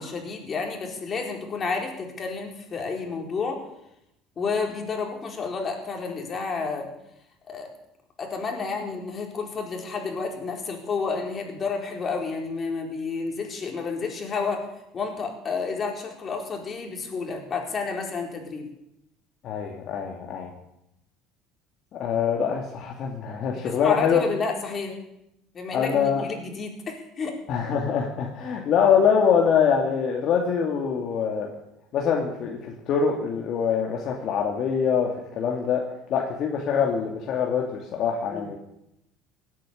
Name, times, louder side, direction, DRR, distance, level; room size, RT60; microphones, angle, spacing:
voice 1, 0.0-3.6 4.4-6.9 7.5-7.7 8.2-18.7 23.5-25.0 25.5-27.4 38.3-38.5, left 4 dB, 35° left, 2 dB, 4.3 m, -30 dB
voice 2, 19.4-20.5 21.9-24.2 25.7-26.3 27.5-31.5 31.9-32.6 32.9-35.8 36.1-38.6, left 7 dB, 55° left, 1 dB, 2.5 m, -24 dB
17.5 x 9.3 x 8.7 m, 0.83 s
supercardioid pair, 105°, 0 cm